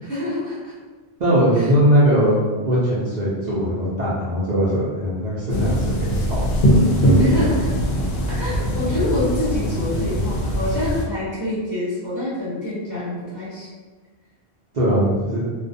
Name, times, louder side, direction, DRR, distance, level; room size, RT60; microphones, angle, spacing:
voice 1, 0.0-0.7 1.6-1.7 7.2-7.7 8.3-13.7, left 1 dB, 20° left, -10 dB, 0.6 m, -26 dB
voice 2, 1.2-6.5 8.6-8.7 14.7-15.4, equal, 50° right, -9 dB, 0.6 m, -20 dB
sound 1, 5.5-11.1, equal, 65° left, 0.7 m, -21 dB
2.4 x 2.1 x 2.6 m, 1.4 s
omnidirectional pair, 1.1 m